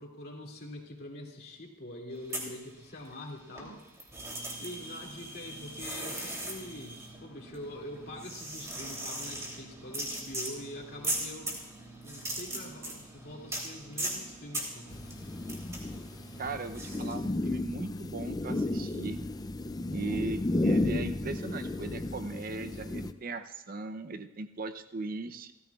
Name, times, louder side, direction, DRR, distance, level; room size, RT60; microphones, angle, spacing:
voice 1, 0.0-3.8 4.6-11.6 12.0-14.9, left 1 dB, 50° left, 0 dB, 2.5 m, -44 dB
sound 1, 2.2-3.3 3.5-17.2, right 1 dB, 15° right, 2.9 m, -39 dB
sound 2, 14.9-23.1, left 2 dB, 20° left, 0.4 m, -33 dB
voice 2, 16.4-19.2 19.9-25.5, right 3 dB, 45° right, 9 dB, 0.6 m, -38 dB
29.0 x 14.0 x 2.4 m, 0.98 s
head